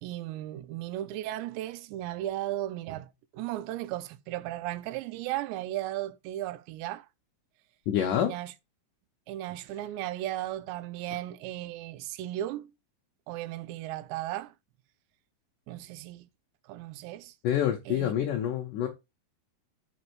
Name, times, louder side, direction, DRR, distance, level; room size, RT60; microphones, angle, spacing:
voice 1, 0.0-7.1 8.2-8.5 9.3-12.7 13.3-14.5 15.7-16.3 16.7-17.4 17.9-18.1, right 14 dB, 85° right, 2.9 m, -36 dB
voice 2, 7.9-8.3 17.4-18.9, left 10 dB, 80° left, 1.9 m, -27 dB
5.9 x 5.3 x 4.6 m
omnidirectional pair, 5.0 m